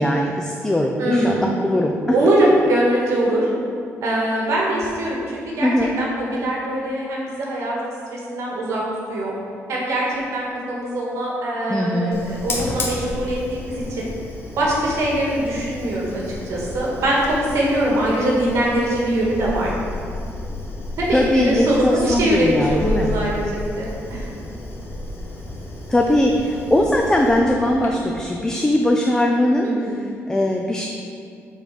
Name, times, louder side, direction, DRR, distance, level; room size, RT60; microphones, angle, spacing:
voice 1, 0.0-2.5 5.6-5.9 11.7-12.2 21.1-23.1 25.9-30.9, left 1 dB, 10° left, 1 dB, 0.5 m, -20 dB
voice 2, 1.0-1.6 2.1-3.5 4.0-5.7 6.0-8.8 9.1-9.3 9.7-10.1 10.3-14.1 14.6-19.7 21.0-24.3 29.6-30.0, right 1 dB, 70° right, -4 dB, 1.7 m, -22 dB
Fire, 12.1-28.2, left 2 dB, 50° left, 1.2 m, -32 dB
7.4 x 3.9 x 5.3 m, 2.3 s
cardioid pair, 125°, 5 cm